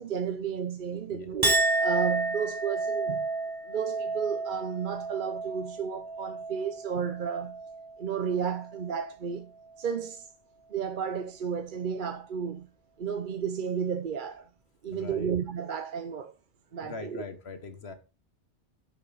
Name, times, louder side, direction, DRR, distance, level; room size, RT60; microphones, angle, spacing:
voice 1, 0.0-3.3 3.6-7.6 8.0-9.5 9.8-10.3 10.7-12.7 13.0-14.5 14.8-16.3 16.7-17.2, right 7 dB, 50° right, 0.8 m, -32 dB
Chink clink, 1.4-8.0 8.4-8.9, right 2 dB, 20° right, 0.8 m, -31 dB
voice 2, 14.9-15.3 16.8-17.9, left 4 dB, 65° left, 1.7 m, -41 dB
10.5 x 7.1 x 4.0 m
omnidirectional pair, 1.2 m